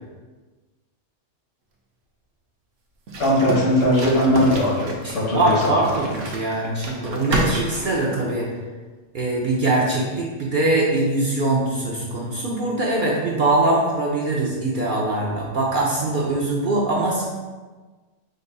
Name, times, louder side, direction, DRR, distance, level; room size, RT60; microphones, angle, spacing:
sound 1, 3.1-8.5, right 2 dB, 75° right, 1.1 m, -30 dB
voice 1, 3.2-5.8, left 1 dB, 65° left, -5 dB, 1.6 m, -19 dB
voice 2, 5.0-8.5 9.1-17.2, right 2 dB, 50° right, -4 dB, 0.7 m, -22 dB
5.2 x 3.9 x 2.2 m, 1.3 s
omnidirectional pair, 1.3 m